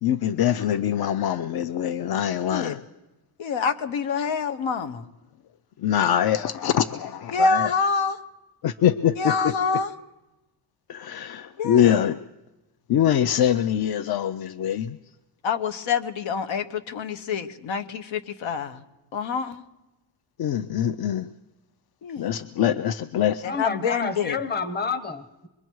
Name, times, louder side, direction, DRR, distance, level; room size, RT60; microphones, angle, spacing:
voice 1, 0.0-2.8 5.8-7.7 8.6-9.5 10.9-12.2 12.9-15.0 20.4-21.3 22.2-23.5, left 10 dB, 55° left, 13 dB, 0.6 m, -23 dB
voice 2, 3.4-5.1 7.3-8.2 9.2-9.9 11.6-12.0 15.4-18.8 19.1-19.6 22.0-22.3 23.4-24.3, left 5 dB, 90° left, 10 dB, 1.3 m, -26 dB
voice 3, 23.4-25.5, left 4 dB, 20° left, 12 dB, 1.0 m, -29 dB
25.5 x 22.0 x 4.7 m, 1.0 s
cardioid pair, 150°, 46 cm